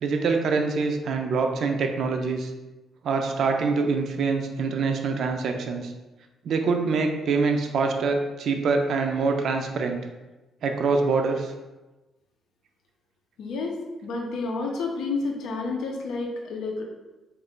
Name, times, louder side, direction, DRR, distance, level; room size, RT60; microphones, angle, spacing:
voice 1, 0.0-2.5 3.0-5.9 6.4-10.0 10.6-11.5, right 4 dB, 65° right, 4 dB, 0.4 m, -25 dB
voice 2, 13.4-16.8, left 3 dB, 80° left, 1 dB, 0.5 m, -30 dB
2.5 x 2.4 x 3.6 m, 1.1 s
cardioid pair, 90°, 0 cm